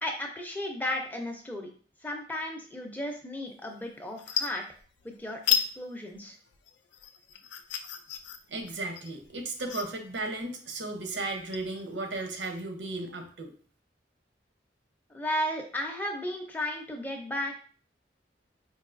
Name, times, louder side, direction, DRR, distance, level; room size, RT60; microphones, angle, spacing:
voice 1, 0.0-1.7 2.0-4.6 5.0-5.4 5.8-6.4 15.1-17.6, left 1 dB, 10° left, 2 dB, 0.5 m, -34 dB
sound 1, 3.6-3.8 4.1-5.1 5.4-5.7 6.1-12.6, left 9 dB, 75° left, 0.4 m, -33 dB
voice 2, 8.5-13.5, right 2 dB, 85° right, 4 dB, 0.8 m, -35 dB
4.6 x 2.6 x 2.5 m, 0.41 s
head